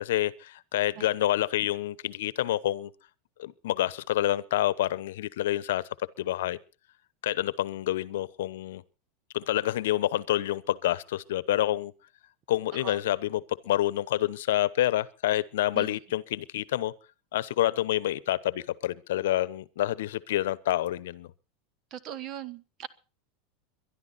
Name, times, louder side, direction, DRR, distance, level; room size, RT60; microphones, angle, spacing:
voice 1, 0.0-2.9 3.4-5.8 6.2-6.6 7.2-8.8 9.3-11.9 12.5-16.9 17.3-21.3, left 14 dB, 85° left, 0.9 m, -28 dB
voice 2, 21.9-22.9, right 11 dB, 40° right, 1.2 m, -39 dB
22.5 x 11.5 x 4.1 m
supercardioid pair, 145°, 0 cm